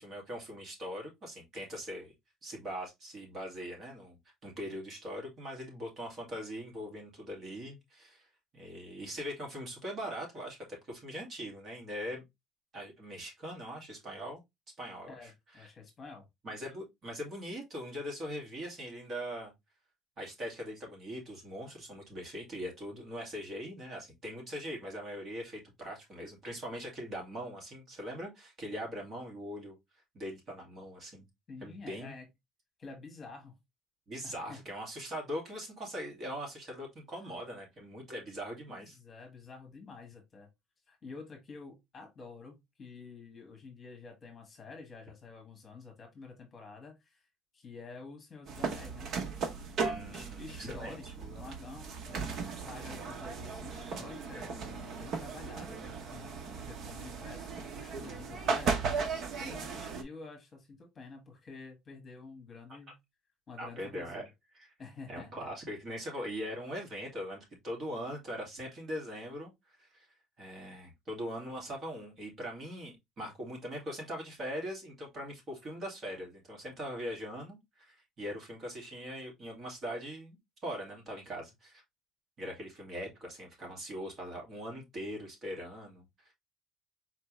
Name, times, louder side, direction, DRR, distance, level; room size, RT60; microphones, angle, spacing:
voice 1, 0.0-2.1 2.4-4.2 4.4-8.3 8.5-12.2 12.7-14.4 14.8-15.7 16.4-19.5 20.2-29.8 30.1-31.3 31.6-32.1 34.1-39.0 49.8-51.1 52.1-52.3 63.6-64.3 64.5-64.7 65.1-70.1 70.4-80.4 80.6-81.8 82.4-86.3, equal, 35° right, 2.0 m, -41 dB
voice 2, 15.1-16.3 31.5-32.3 32.8-33.6 34.2-34.7 38.7-40.5 40.9-47.3 47.5-49.1 50.1-63.0 63.5-64.3 64.8-65.5, left 4 dB, 25° left, 1.6 m, -49 dB
sound 1, 48.5-60.0, right 5 dB, 50° right, 0.9 m, -37 dB
4.5 x 3.4 x 3.1 m
cardioid pair, 150°, 0 cm